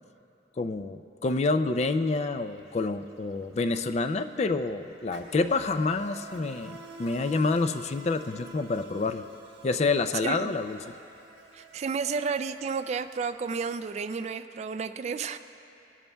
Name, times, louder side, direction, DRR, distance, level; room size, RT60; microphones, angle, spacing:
voice 1, 0.6-9.2 9.6-10.8, left 3 dB, 35° left, 9 dB, 0.4 m, -28 dB
Insect, 2.4-2.6 2.9-13.9, right 1 dB, 85° right, 1.2 m, -49 dB
voice 2, 11.5-15.4, right 5 dB, 35° right, 11 dB, 0.3 m, -31 dB
21.0 x 12.0 x 2.3 m, 3.0 s
head